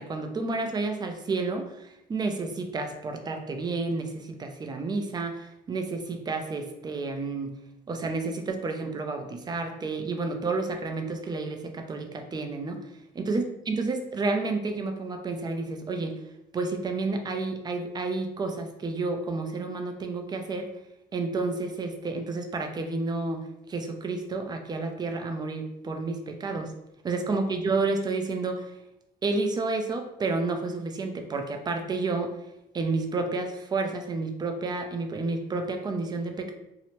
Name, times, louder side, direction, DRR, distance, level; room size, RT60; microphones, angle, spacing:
voice 1, 0.0-7.6 7.9-12.8 13.2-16.2 16.5-20.8 21.1-26.7 27.0-28.7 29.2-32.4 32.7-36.5, right 3 dB, 25° right, 5 dB, 0.4 m, -30 dB
2.8 x 2.0 x 2.9 m, 0.88 s
cardioid pair, 110°, 17 cm